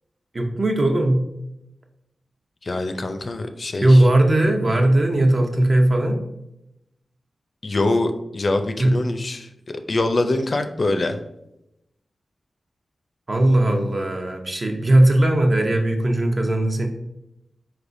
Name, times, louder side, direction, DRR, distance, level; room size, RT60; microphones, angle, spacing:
voice 1, 0.3-1.2 3.8-6.2 8.8-9.0 13.3-16.9, right 1 dB, 45° right, 3 dB, 0.7 m, -18 dB
voice 2, 2.6-4.0 7.6-11.2, left 2 dB, 55° left, 7 dB, 0.4 m, -24 dB
4.2 x 3.4 x 2.6 m, 0.85 s
cardioid pair, 45°, 0 cm